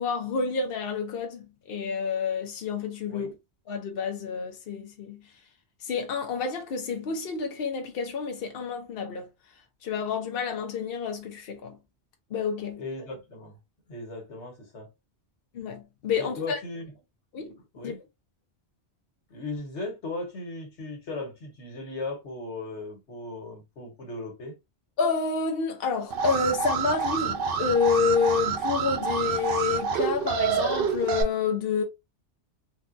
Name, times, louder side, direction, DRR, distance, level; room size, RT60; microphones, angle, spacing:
voice 1, 0.0-3.3 3.7-5.2 5.8-9.3 9.8-11.8 12.3-12.8 15.5-16.6 17.3-17.6 17.8-17.9 25.0-31.8, left 5 dB, 60° left, 0.8 m, -29 dB
voice 2, 12.7-13.6 13.9-14.9 16.2-16.9 17.7-18.1 19.3-24.6, left 2 dB, 85° left, 1.4 m, -37 dB
Alarm, 26.1-31.2, right 6 dB, 60° right, 0.7 m, -27 dB
3.7 x 2.2 x 2.5 m
omnidirectional pair, 1.1 m